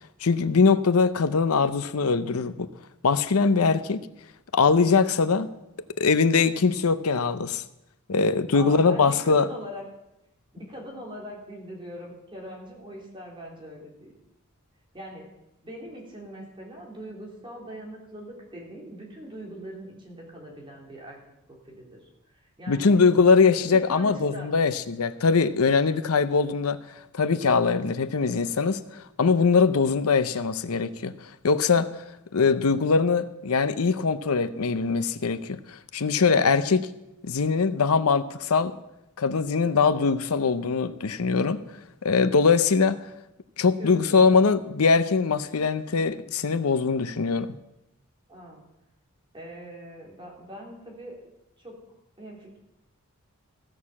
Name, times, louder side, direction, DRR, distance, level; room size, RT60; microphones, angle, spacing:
voice 1, 0.2-2.7 3.0-4.0 4.5-5.5 6.0-7.6 8.1-9.5 22.7-26.8 27.1-28.8 29.2-31.2 31.4-31.9 32.3-36.9 37.2-38.7 39.2-41.6 42.0-43.0 43.6-47.5, left 4 dB, 90° left, 13 dB, 0.7 m, -22 dB
voice 2, 8.5-9.8 10.5-14.1 14.9-15.3 15.6-21.2 21.5-22.9 23.7-24.5 43.8-44.4 48.3-48.6 49.3-51.1 51.6-51.8 52.2-52.6, equal, 25° right, -2 dB, 3.4 m, -42 dB
15.5 x 6.7 x 7.2 m, 0.89 s
head